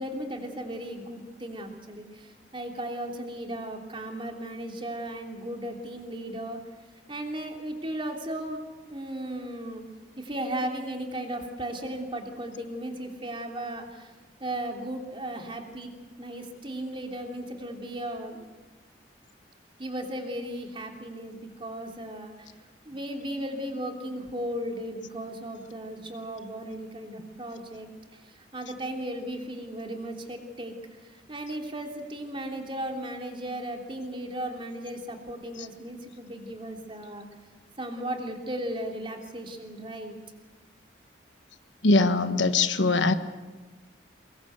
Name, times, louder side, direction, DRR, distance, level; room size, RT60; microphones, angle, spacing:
voice 1, 0.0-6.6 7.1-8.6 8.9-9.8 10.2-14.1 14.4-15.9 16.2-18.4 19.8-22.6 22.8-30.7 31.0-37.3 37.8-40.2, right 1 dB, 30° right, 2 dB, 3.1 m, -36 dB
voice 2, 41.8-43.1, left 3 dB, 85° left, 10 dB, 1.3 m, -21 dB
24.0 x 21.0 x 8.1 m, 1.2 s
head